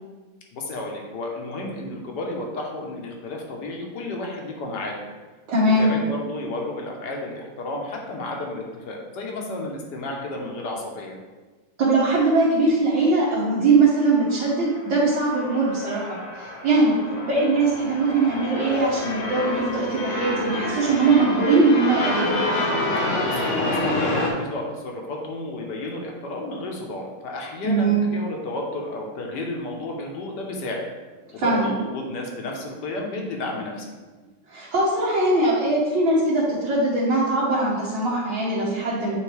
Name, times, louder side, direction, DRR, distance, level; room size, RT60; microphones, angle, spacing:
voice 1, 0.5-4.9 5.6-11.2 23.2-30.9 31.3-33.9, left 2 dB, 60° left, 0 dB, 1.4 m, -32 dB
voice 2, 5.5-5.9 11.8-22.4 27.6-28.0 31.4-31.7 34.5-39.1, right 2 dB, 60° right, -8 dB, 1.9 m, -21 dB
sound 1, 14.3-24.3, left 1 dB, 75° left, 1.9 m, -28 dB
8.9 x 3.9 x 3.2 m, 1.3 s
omnidirectional pair, 2.4 m